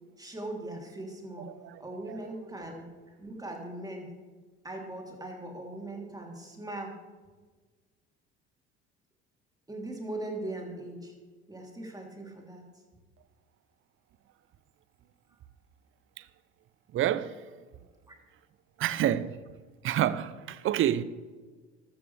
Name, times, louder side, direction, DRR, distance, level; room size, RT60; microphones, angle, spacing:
voice 1, 0.2-1.5 1.8-4.2 4.6-7.0 9.7-11.1 11.5-12.6 18.1-18.2, right 1 dB, 10° right, 3.4 m, -40 dB
voice 2, 1.4-1.8 2.1-2.2 16.9-17.4 18.8-19.4 19.8-21.0, right 11 dB, 40° right, 0.7 m, -28 dB
15.0 x 13.0 x 3.5 m
figure-of-eight pair, 65°, 32 cm